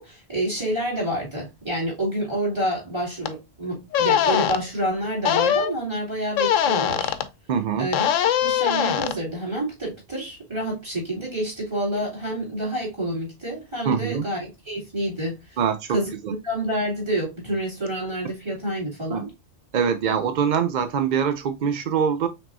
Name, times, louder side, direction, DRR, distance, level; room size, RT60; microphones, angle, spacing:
voice 1, 0.0-7.2 7.8-8.1 8.4-15.6 15.9-16.1 16.4-19.3, right 1 dB, 20° right, 2.8 m, -28 dB
sound 1, 3.2-3.3 3.9-4.6 5.2-5.7 6.3-7.3 7.9-9.2, left 9 dB, 85° left, 1.0 m, -21 dB
voice 2, 7.5-7.9 13.8-14.3 15.6-16.0 16.2-16.3 19.1-19.3 19.7-22.3, right 7 dB, 65° right, 0.4 m, -23 dB
5.7 x 3.6 x 2.5 m
omnidirectional pair, 1.3 m